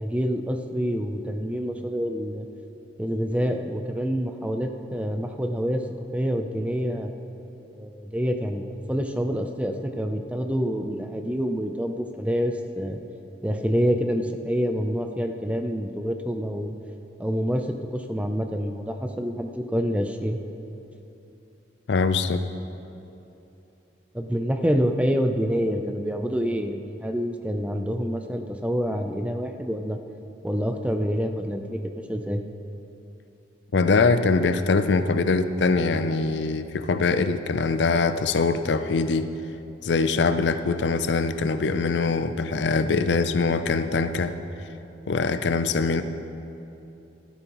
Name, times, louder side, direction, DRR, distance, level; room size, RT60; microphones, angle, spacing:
voice 1, 0.0-2.5 3.0-5.8 6.1-7.1 7.7-13.0 13.4-16.8 17.2-20.4 24.1-30.0 30.4-31.8 32.1-32.4, equal, 5° right, 5 dB, 0.5 m, -27 dB
voice 2, 21.9-22.5 33.7-39.3 39.8-44.4 45.1-46.0, left 4 dB, 80° left, 10 dB, 0.5 m, -23 dB
13.5 x 12.5 x 3.1 m, 2.9 s
head